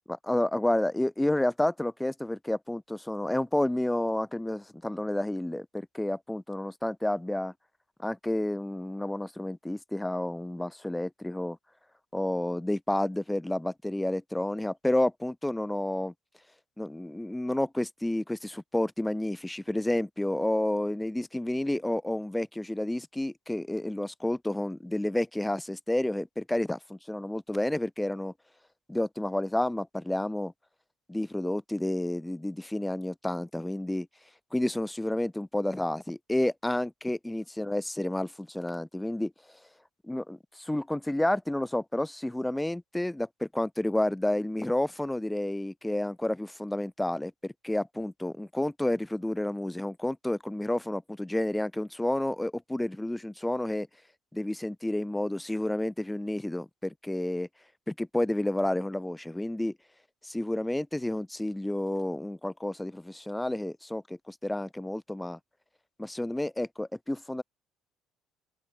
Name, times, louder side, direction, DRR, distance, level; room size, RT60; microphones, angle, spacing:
voice 1, 0.1-7.5 8.0-11.6 12.1-16.1 16.8-28.3 28.9-30.5 31.1-34.1 34.5-39.3 40.0-53.9 54.3-57.5 57.9-59.7 60.2-65.4 66.0-67.4, left 1 dB, 5° left, 0.7 m, -30 dB
open air
supercardioid pair, 90°, 0 cm